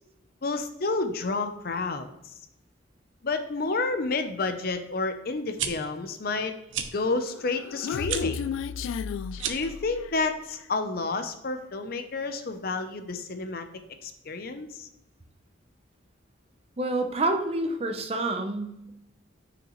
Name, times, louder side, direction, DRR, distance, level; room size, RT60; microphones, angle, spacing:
voice 1, 0.4-2.1 3.2-6.5 6.9-8.4 9.5-13.7 14.0-14.9, left 3 dB, 50° left, 8 dB, 0.6 m, -30 dB
sound 1, 5.4-5.7 6.7-6.9 8.0-8.2 9.3-9.7, right 8 dB, 80° right, 0.7 m, -31 dB
Human voice, 7.3-10.3, left 6 dB, 90° left, 0.3 m, -33 dB
voice 2, 16.8-18.9, right 2 dB, 30° right, 6 dB, 0.7 m, -28 dB
6.3 x 5.9 x 3.1 m, 0.85 s
head